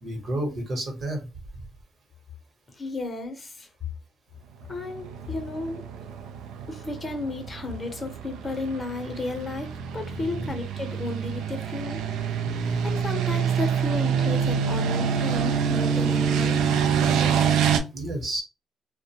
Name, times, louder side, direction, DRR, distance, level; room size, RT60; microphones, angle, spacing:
voice 1, 0.0-1.3 10.1-10.5 12.4-12.8 17.9-18.4, right 1 dB, 50° right, 1.0 m, -31 dB
voice 2, 2.7-3.7 4.7-5.9 6.7-12.3 12.8-16.7 17.0-17.4, left 2 dB, 30° left, 0.8 m, -33 dB
sound 1, 4.9-17.8, right 7 dB, 90° right, 0.4 m, -26 dB
2.4 x 2.1 x 2.8 m
cardioid pair, 90°, 0 cm